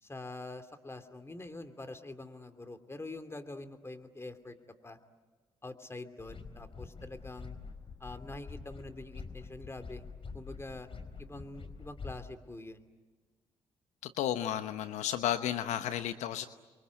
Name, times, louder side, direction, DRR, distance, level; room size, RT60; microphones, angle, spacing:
voice 1, 0.0-4.6 4.8-5.0 5.6-7.6 8.0-10.0 10.3-10.9 11.2-12.9, left 2 dB, 20° left, 8 dB, 2.8 m, -45 dB
sound 1, 6.2-12.2, left 4 dB, 50° left, 4.1 m, -46 dB
voice 2, 14.0-16.5, left 11 dB, 75° left, 10 dB, 1.0 m, -33 dB
29.5 x 23.5 x 8.4 m, 1.3 s
hypercardioid pair, 50°, 12 cm